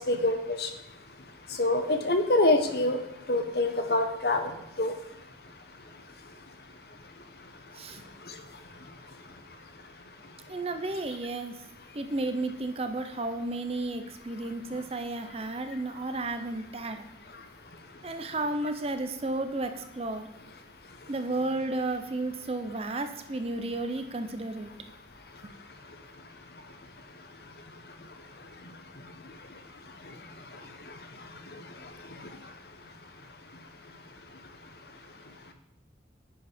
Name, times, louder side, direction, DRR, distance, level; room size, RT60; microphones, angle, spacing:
voice 1, 0.1-0.7 1.6-3.0 3.3-4.5 4.8-4.9, left 2 dB, 60° left, 6 dB, 0.9 m, -25 dB
voice 2, 10.5-11.6 11.9-17.0 18.0-20.3 21.1-24.7, right 2 dB, 35° right, 8 dB, 0.6 m, -33 dB
9.3 x 4.7 x 5.0 m, 0.87 s
head